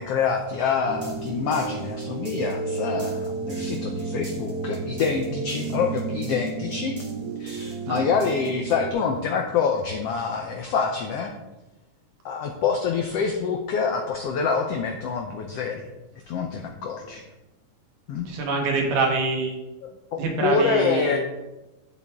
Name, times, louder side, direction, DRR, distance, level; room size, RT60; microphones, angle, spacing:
voice 1, 0.0-7.0 7.4-11.3 12.2-15.9 16.3-17.3 18.1-18.3 19.8-21.2, left 5 dB, 85° left, 3 dB, 1.3 m, -26 dB
sound 1, 0.9-8.9, right 4 dB, 40° right, 1.6 m, -32 dB
voice 2, 18.3-19.5 20.2-21.2, right 3 dB, 80° right, 1 dB, 3.3 m, -25 dB
11.5 x 8.2 x 3.6 m, 1.0 s
omnidirectional pair, 3.8 m